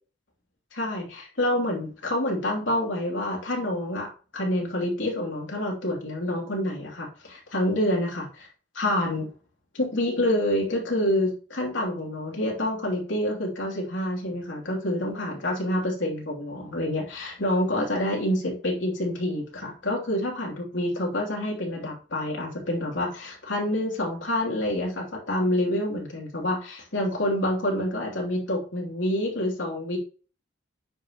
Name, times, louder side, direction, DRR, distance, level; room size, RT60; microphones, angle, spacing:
voice 1, 0.7-8.5 8.7-9.3 9.8-30.0, left 1 dB, 65° left, -1 dB, 2.9 m, -27 dB
9.2 x 5.9 x 3.0 m, 0.37 s
head